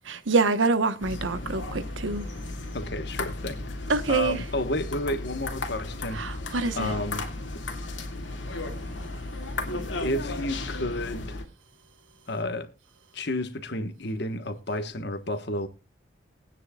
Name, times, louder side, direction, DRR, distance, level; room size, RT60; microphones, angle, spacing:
voice 1, 0.1-2.3 3.9-4.4 6.1-6.9, right 4 dB, 85° right, 1.2 m, -26 dB
sound 1, 1.0-11.4, left 2 dB, 75° left, 2.3 m, -35 dB
voice 2, 2.7-3.8 4.1-6.2 6.8-7.2 9.9-11.4 12.3-12.7 13.1-15.7, left 1 dB, 60° left, 1.4 m, -31 dB
22.5 x 9.4 x 2.4 m
head